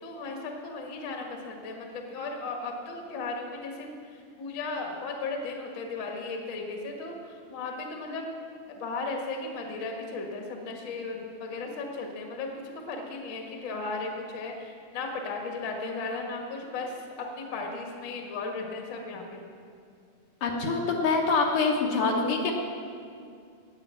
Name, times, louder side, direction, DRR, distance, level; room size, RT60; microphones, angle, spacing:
voice 1, 0.0-3.9 4.4-7.1 7.5-8.2 8.8-12.5 12.7-16.9 17.2-19.5, left 3 dB, 45° left, 2 dB, 1.6 m, -35 dB
voice 2, 20.4-22.5, left 4 dB, 65° left, 0 dB, 2.5 m, -25 dB
19.0 x 8.1 x 5.7 m, 2.3 s
omnidirectional pair, 4.2 m